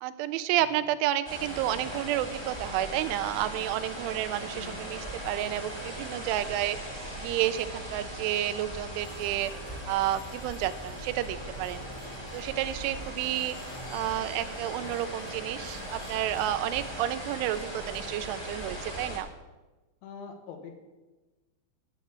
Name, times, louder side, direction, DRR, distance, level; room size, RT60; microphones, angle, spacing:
voice 1, 0.0-6.8 7.1-11.8 12.3-13.6 13.9-19.3, right 13 dB, 85° right, 12 dB, 3.0 m, -31 dB
sound 1, 1.2-19.2, equal, 10° left, 1.5 m, -39 dB
voice 2, 4.5-4.9 13.7-14.3 14.8-15.2 20.0-20.7, left 5 dB, 80° left, 5 dB, 3.7 m, -45 dB
sound 2, 9.0-19.1, left 2 dB, 55° left, 1.1 m, -56 dB
sound 3, 9.4-13.4, equal, 40° right, 1.3 m, -50 dB
9.1 x 8.4 x 8.0 m, 1.2 s
omnidirectional pair, 5.5 m